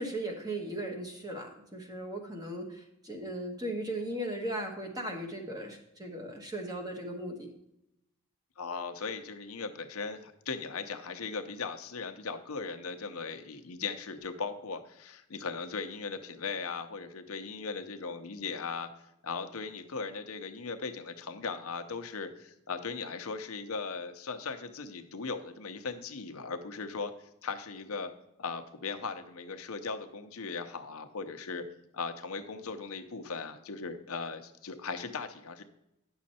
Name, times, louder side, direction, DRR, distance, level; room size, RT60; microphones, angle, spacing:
voice 1, 0.0-7.5, right 1 dB, 20° right, 2 dB, 1.2 m, -37 dB
voice 2, 8.6-18.9 19.2-28.1 28.4-31.7 31.9-35.6, left 4 dB, 85° left, 8 dB, 0.8 m, -38 dB
9.6 x 6.4 x 4.2 m, 0.85 s
head